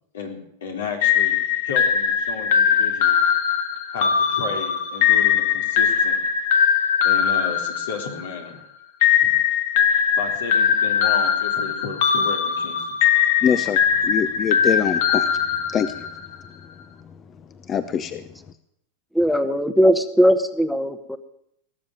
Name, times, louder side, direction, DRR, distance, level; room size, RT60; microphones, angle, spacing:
voice 1, 0.1-3.2 3.9-6.2 7.0-8.6 10.2-13.0, left 5 dB, 80° left, 3 dB, 3.7 m, -33 dB
sound 1, 1.0-8.4 9.0-16.2, left 8 dB, 65° left, 1.7 m, -20 dB
voice 2, 13.4-15.3 15.7-16.0 17.7-18.2, left 8 dB, 30° left, 12 dB, 0.8 m, -24 dB
voice 3, 19.1-21.2, equal, ahead, 11 dB, 1.1 m, -19 dB
18.5 x 7.3 x 9.3 m, 0.75 s
hypercardioid pair, 115°, 0 cm